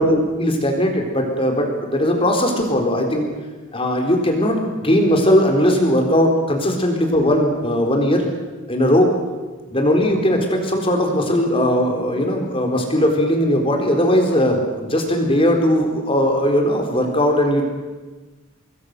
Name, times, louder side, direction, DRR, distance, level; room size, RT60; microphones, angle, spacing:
voice 1, 0.0-3.3 3.7-8.3 8.7-9.1 9.7-17.6, equal, 25° left, 3 dB, 4.1 m, -18 dB
26.0 x 21.0 x 6.8 m, 1.3 s
head